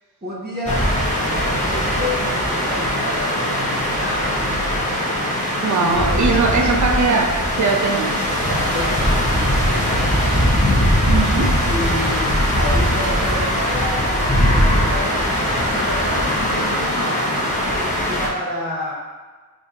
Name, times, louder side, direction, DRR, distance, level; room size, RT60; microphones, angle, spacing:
voice 1, 0.2-0.9 1.2-5.0 5.8-6.7 8.4-10.3 11.6-18.9, left 1 dB, 25° right, -7 dB, 0.8 m, -30 dB
sound 1, 0.7-18.3, equal, 20° left, 0.8 m, -20 dB
voice 2, 5.6-8.3 11.1-11.6, right 4 dB, 50° right, 3 dB, 0.5 m, -20 dB
4.9 x 2.5 x 2.8 m, 1.4 s
wide cardioid pair, 40°, 39 cm